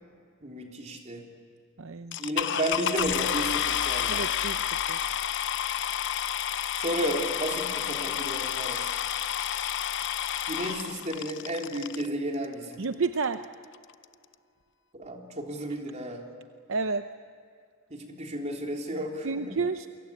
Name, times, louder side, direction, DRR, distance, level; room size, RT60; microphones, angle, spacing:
voice 1, 0.4-1.2 2.2-4.2 6.8-8.9 10.5-12.8 14.9-16.2 17.9-19.6, right 1 dB, 35° right, 1 dB, 3.6 m, -33 dB
voice 2, 1.8-2.2 4.1-4.6 4.9-5.0 12.8-13.4 16.7-17.1 19.2-19.9, right 4 dB, 65° right, 9 dB, 0.7 m, -30 dB
sound 1, 2.1-12.1 12.8-12.9 13.4-13.5 13.7-14.0, left 10 dB, 60° left, 0.7 m, -30 dB
28.5 x 23.5 x 8.7 m, 2.3 s
head